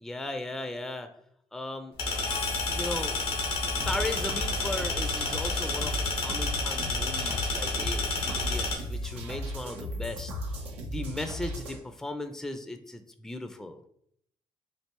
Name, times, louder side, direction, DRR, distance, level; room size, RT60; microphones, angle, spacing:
voice 1, 0.0-1.1 1.5-1.9 2.7-3.2 3.9-10.3 10.9-13.8, left 2 dB, 5° left, 8 dB, 0.4 m, -37 dB
sound 1, 2.0-8.7, left 3 dB, 85° left, 0.8 m, -30 dB
Harmonica, 2.0-9.8, left 6 dB, 60° left, 0.5 m, -43 dB
sound 2, 3.8-11.8, equal, 90° right, 0.6 m, -36 dB
3.2 x 2.6 x 2.9 m, 0.70 s
hypercardioid pair, 45°, 14 cm